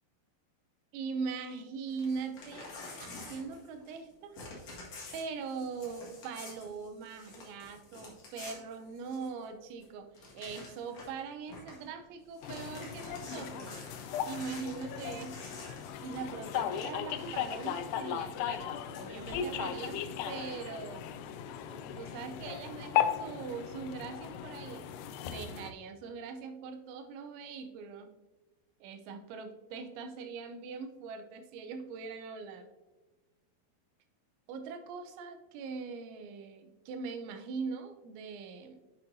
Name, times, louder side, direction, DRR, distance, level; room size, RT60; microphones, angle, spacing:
voice 1, 0.9-2.7 3.0-4.4 5.1-10.1 10.3-13.8 14.2-15.5 16.0-21.0 21.7-24.8 25.2-28.1 28.8-32.7 34.5-38.8, right 5 dB, 85° right, 6 dB, 3.1 m, -41 dB
Crumpling crinkling / Tearing, 1.9-4.1 4.3-9.4 9.8-9.9 10.1-11.2 11.5-11.8 12.2-18.0 18.8-20.4, left 3 dB, 50° left, 2.0 m, -49 dB
sound 1, 12.4-25.7, left 9 dB, 90° left, 2.3 m, -37 dB
9.2 x 6.9 x 2.7 m, 1.1 s
omnidirectional pair, 5.2 m